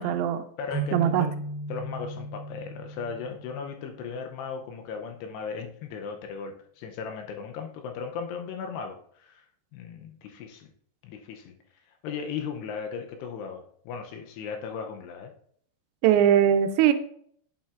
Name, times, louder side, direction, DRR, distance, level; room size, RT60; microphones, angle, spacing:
voice 1, 0.0-0.4 0.9-1.3 16.0-16.9, right 10 dB, 85° right, 9 dB, 2.8 m, -21 dB
voice 2, 0.6-1.3 1.7-9.5 9.7-10.7 11.0-11.5 12.0-15.3, left 6 dB, 80° left, 4 dB, 2.6 m, -37 dB
sound 1, 0.7-4.2, right 2 dB, 25° right, 0.9 m, -36 dB
8.6 x 7.2 x 2.4 m, 0.63 s
omnidirectional pair, 5.2 m